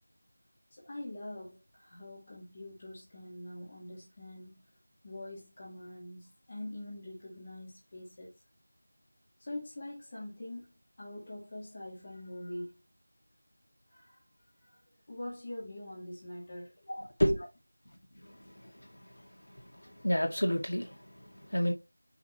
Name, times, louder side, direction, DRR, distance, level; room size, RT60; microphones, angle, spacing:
voice 1, 0.7-4.6 5.0-8.4 9.4-12.8 13.9-14.2 14.6-14.8 15.1-17.0, left 1 dB, 25° left, 2.3 m, -44 dB
voice 2, 16.9-17.4 18.3-18.4 19.8-21.0 21.5-21.7, equal, 60° left, 2.1 m, -29 dB
6.6 x 5.8 x 3.0 m
figure-of-eight pair, 170°, 0 cm